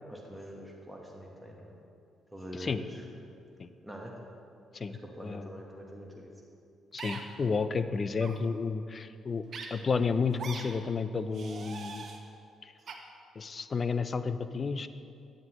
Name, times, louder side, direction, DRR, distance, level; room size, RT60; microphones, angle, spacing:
voice 1, 0.1-1.8 2.3-3.0 3.8-4.1 4.9-6.3, equal, ahead, -1 dB, 1.1 m, -44 dB
voice 2, 2.5-2.8 3.6-3.7 4.7-5.5 6.9-9.4 9.7-12.0 12.6-12.7 13.4-14.9, left 5 dB, 40° left, 12 dB, 0.3 m, -31 dB
sound 1, 7.0-7.2 8.1-8.3 9.5-9.7 10.4-10.6 11.3-12.2 12.9-13.0, right 5 dB, 60° right, 0.8 m, -41 dB
9.0 x 7.9 x 2.9 m, 2.4 s
cardioid pair, 90°, 0 cm